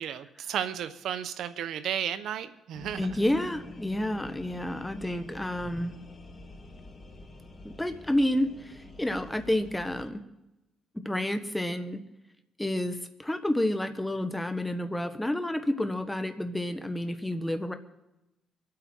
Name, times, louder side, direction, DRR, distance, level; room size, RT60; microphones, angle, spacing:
voice 1, 0.0-3.2, right 9 dB, 75° right, 12 dB, 0.9 m, -33 dB
sound 1, 2.7-10.1, left 3 dB, 30° left, 1.7 m, -47 dB
voice 2, 3.0-5.9 7.6-10.2 10.9-12.0 12.6-17.7, left 1 dB, 10° left, 9 dB, 1.3 m, -30 dB
24.5 x 8.7 x 4.5 m, 0.97 s
cardioid pair, 90°, 0 cm